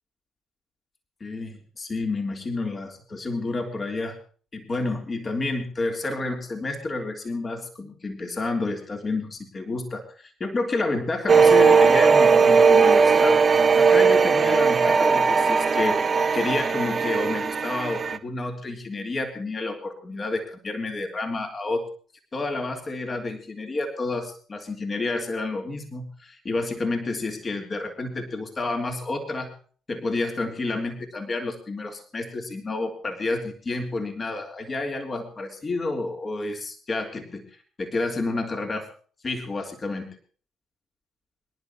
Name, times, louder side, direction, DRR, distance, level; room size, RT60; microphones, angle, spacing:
voice 1, 1.2-4.2 4.5-13.4 13.8-16.0 16.3-21.8 22.3-29.5 29.9-38.9 39.2-40.1, left 2 dB, 40° left, 3 dB, 3.4 m, -30 dB
sound 1, 11.3-18.2, right 5 dB, 40° right, 1.3 m, -18 dB
25.0 x 11.5 x 3.0 m, 0.41 s
hypercardioid pair, 50°, 0 cm